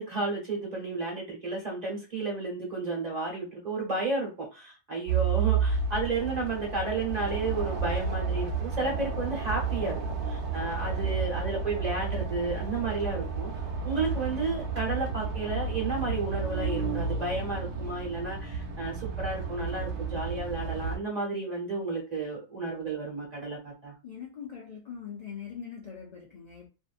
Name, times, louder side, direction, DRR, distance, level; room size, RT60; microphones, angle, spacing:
voice 1, 0.0-10.0 10.3-13.5 13.8-23.9, right 3 dB, 35° right, 1.1 m, -32 dB
sound 1, 5.1-21.0, right 5 dB, 65° right, 0.9 m, -31 dB
voice 2, 24.0-26.7, left 7 dB, 75° left, 0.3 m, -42 dB
2.6 x 2.6 x 2.4 m
omnidirectional pair, 1.4 m